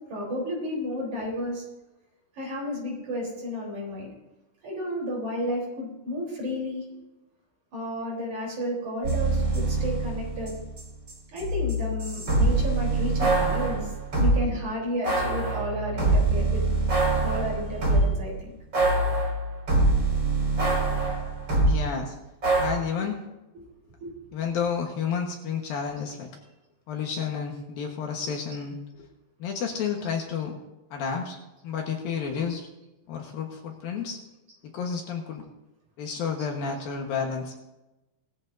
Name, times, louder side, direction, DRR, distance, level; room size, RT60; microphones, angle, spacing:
voice 1, 0.0-1.6 2.4-4.1 4.6-6.8 7.7-10.5 11.3-16.6 17.2-18.5 24.0-24.1 36.4-36.5, left 1 dB, 45° right, -2 dB, 5.0 m, -32 dB
sound 1, 9.0-10.8 11.1-14.4 15.0-18.2 18.7-21.8 22.4-22.7, right 2 dB, 25° right, 5.4 m, -24 dB
voice 2, 21.6-22.2 22.6-23.2 24.3-26.3 26.9-28.8 29.4-30.5 30.9-31.4 31.6-32.6 33.1-34.2 34.6-35.4 36.0-37.6, left 6 dB, 65° left, 1 dB, 2.8 m, -31 dB
19.0 x 14.5 x 2.7 m, 1.0 s
omnidirectional pair, 4.8 m